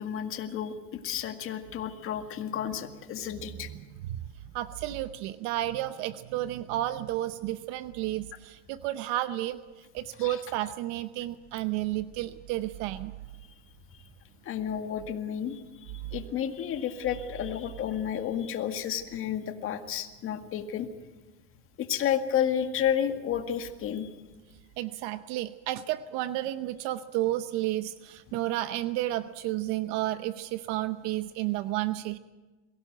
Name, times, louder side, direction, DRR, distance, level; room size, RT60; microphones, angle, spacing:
voice 1, 0.0-3.7 10.2-10.4 14.5-15.6 16.1-20.9 21.8-24.1, left 9 dB, 40° left, 6 dB, 2.0 m, -31 dB
voice 2, 3.5-4.2 4.5-9.6 9.9-13.1 24.8-32.2, right 15 dB, 60° right, 12 dB, 0.9 m, -32 dB
23.0 x 17.0 x 8.0 m, 1.2 s
supercardioid pair, 115°, 32 cm